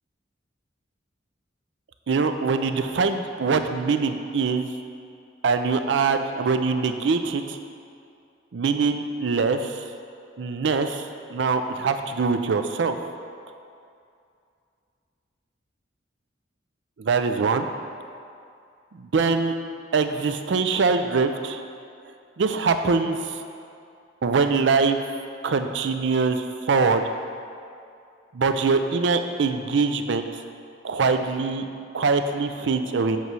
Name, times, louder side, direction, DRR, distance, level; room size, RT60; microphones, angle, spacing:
voice 1, 2.1-4.7 5.4-7.6 8.5-9.8 10.4-13.0 17.0-17.7 18.9-19.5 19.9-21.6 22.4-23.3 24.2-25.0 25.4-27.0 28.3-30.4 30.8-31.7 31.9-33.2, right 4 dB, 70° right, 8 dB, 0.4 m, -23 dB
8.1 x 3.1 x 6.0 m, 2.4 s
head